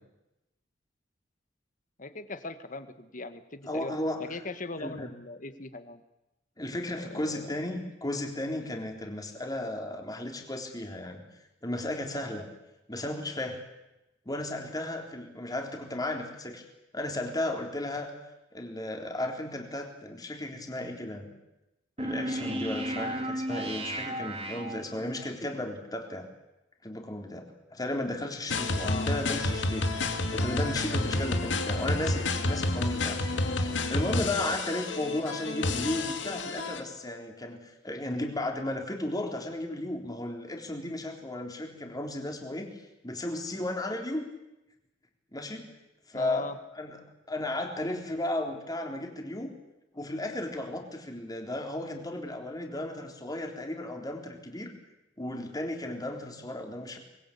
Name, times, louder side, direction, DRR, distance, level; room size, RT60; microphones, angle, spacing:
voice 1, 2.0-3.9 4.2-6.0 6.9-7.8 28.8-29.1 46.1-46.6, left 3 dB, 45° left, 10 dB, 1.8 m, -39 dB
voice 2, 3.7-4.2 4.8-5.1 6.6-11.2 11.6-12.5 12.9-13.6 14.3-16.6 16.9-18.1 18.5-21.3 22.0-26.3 26.8-29.9 30.3-42.7 43.0-44.3 45.3-45.7 46.1-47.0 47.3-49.5 49.9-54.7 55.2-57.0, left 1 dB, 20° left, 3 dB, 3.8 m, -34 dB
sound 1, 22.0-25.3, right 1 dB, 35° right, 3.2 m, -34 dB
sound 2, 28.5-36.8, left 2 dB, 85° left, 2.4 m, -30 dB
25.0 x 21.0 x 8.7 m, 0.94 s
head